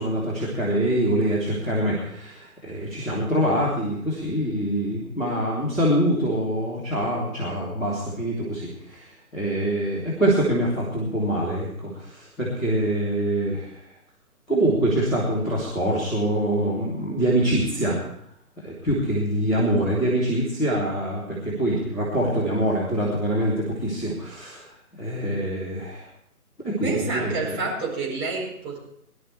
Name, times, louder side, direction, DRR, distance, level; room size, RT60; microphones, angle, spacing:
voice 1, 0.0-13.8 14.5-18.0 18.6-26.1 26.6-27.5, right 1 dB, ahead, -15 dB, 0.7 m, -25 dB
voice 2, 26.8-28.8, right 3 dB, 20° right, -4 dB, 4.4 m, -28 dB
22.5 x 12.0 x 3.3 m, 0.72 s
figure-of-eight pair, 145°, 46 cm